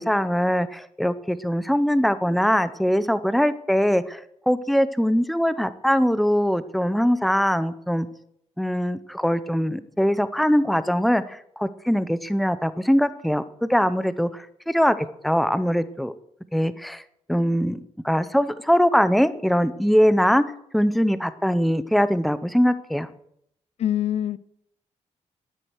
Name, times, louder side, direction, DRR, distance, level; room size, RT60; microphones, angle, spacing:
voice 1, 0.0-8.1 8.6-15.0 15.2-16.1 16.5-17.0 17.3-17.8 18.0-20.4 20.7-23.1, equal, ahead, 13 dB, 0.7 m, -22 dB
voice 2, 23.8-24.4, left 11 dB, 65° left, 18 dB, 0.6 m, -24 dB
13.5 x 9.8 x 6.4 m, 0.72 s
wide cardioid pair, 135°, 12 cm